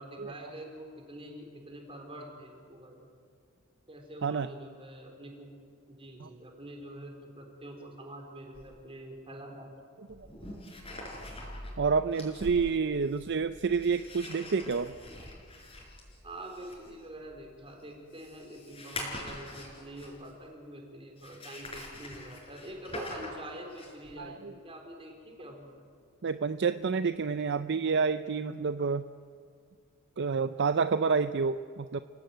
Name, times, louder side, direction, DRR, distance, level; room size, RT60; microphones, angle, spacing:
voice 1, 0.0-3.1 3.9-5.5 5.9-9.7 16.2-25.7, right 1 dB, 25° right, 2 dB, 4.4 m, -46 dB
sound 1, 8.5-8.7 10.1-20.4 21.2-24.1, left 1 dB, 25° left, 5.4 m, -44 dB
voice 2, 11.8-14.9 24.2-24.5 26.2-29.1 30.2-32.0, right 5 dB, 55° right, 12 dB, 0.5 m, -29 dB
29.5 x 17.0 x 9.2 m, 2.3 s
head